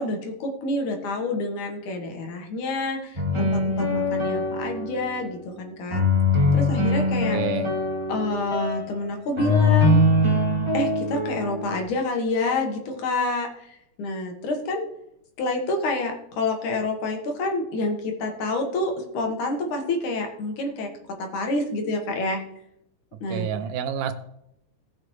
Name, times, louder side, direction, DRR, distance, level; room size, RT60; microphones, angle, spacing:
voice 1, 0.0-6.0 6.5-7.4 8.1-10.0 10.7-14.8 15.4-20.9 21.2-22.4 23.2-23.5, left 2 dB, 65° left, 3 dB, 2.7 m, -28 dB
sound 1, 3.2-5.2 5.9-8.9 9.4-11.8, left 2 dB, 15° right, 0.9 m, -22 dB
voice 2, 7.3-7.7 23.3-24.1, right 8 dB, 75° right, 9 dB, 2.2 m, -28 dB
18.5 x 6.3 x 3.1 m, 0.77 s
omnidirectional pair, 4.1 m